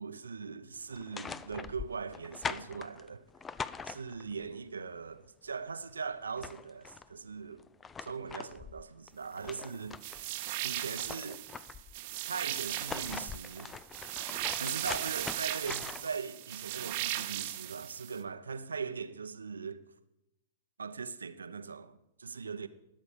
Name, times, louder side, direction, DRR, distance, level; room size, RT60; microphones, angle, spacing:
voice 1, 0.0-3.2 3.8-7.6 8.0-10.0 10.6-11.4 12.3-13.8 14.6-19.8 20.8-22.7, right 5 dB, 80° right, 0.8 m, -40 dB
sound 1, 0.9-4.4 5.9-6.0 6.2-7.1 7.6-10.2 10.6-12.0 12.6-16.2, left 5 dB, 15° left, 0.5 m, -43 dB
sound 2, 10.0-18.2, right 15 dB, 45° right, 0.9 m, -37 dB
19.0 x 7.3 x 5.2 m
figure-of-eight pair, 105°, 0 cm